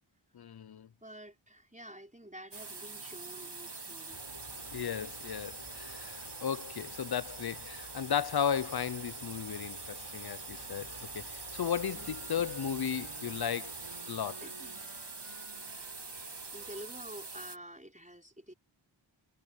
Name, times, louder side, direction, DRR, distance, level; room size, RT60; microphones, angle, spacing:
voice 1, 0.3-0.9 4.7-13.7 14.1-14.4, left 8 dB, 50° left, 0.7 m, -35 dB
voice 2, 1.0-4.2 11.9-12.3 14.4-15.1 16.2-18.5, right 1 dB, 15° right, 5.2 m, -49 dB
sound 1, 2.5-17.6, right 3 dB, 55° right, 2.3 m, -44 dB
sound 2, 4.1-14.0, left 3 dB, 80° left, 6.3 m, -54 dB
sound 3, 11.5-17.0, right 4 dB, 90° right, 7.0 m, -56 dB
wide cardioid pair, 45°, 48 cm